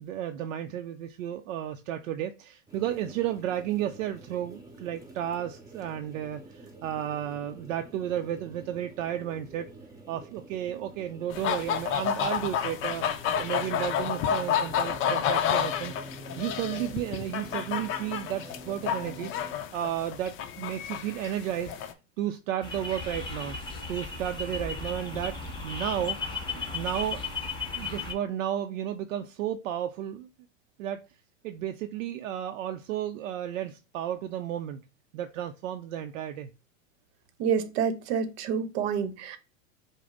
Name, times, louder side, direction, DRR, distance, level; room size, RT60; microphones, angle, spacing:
voice 1, 0.0-9.7 10.1-13.1 13.4-19.3 19.7-21.7 22.2-23.6 23.9-25.4 25.6-26.2 26.7-27.3 27.7-30.3 30.8-31.1 31.4-34.8 35.1-36.5, right 11 dB, 75° right, 0.5 m, -33 dB
sound 1, 2.7-19.5, right 2 dB, 10° right, 0.9 m, -48 dB
sound 2, 11.3-21.9, left 8 dB, 35° left, 0.5 m, -30 dB
sound 3, 22.6-28.1, left 4 dB, 10° left, 1.2 m, -35 dB
voice 2, 37.4-39.4, right 7 dB, 55° right, 0.8 m, -28 dB
5.0 x 2.0 x 3.7 m
hypercardioid pair, 105°, 39 cm